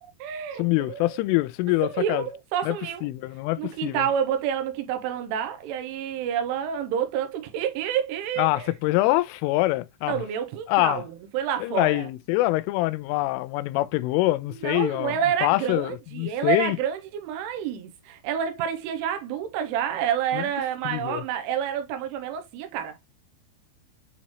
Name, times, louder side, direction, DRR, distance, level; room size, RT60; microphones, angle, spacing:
voice 1, 0.0-1.1 1.8-3.1 3.6-8.7 10.1-11.1 11.3-12.1 14.6-23.0, right 9 dB, 85° right, 3.2 m, -28 dB
voice 2, 0.6-2.3 2.6-2.8 3.0-4.1 8.4-10.2 10.7-11.1 11.6-16.8 20.3-20.5 20.8-21.2, left 19 dB, 90° left, 3.1 m, -25 dB
8.6 x 4.1 x 3.0 m
omnidirectional pair, 5.6 m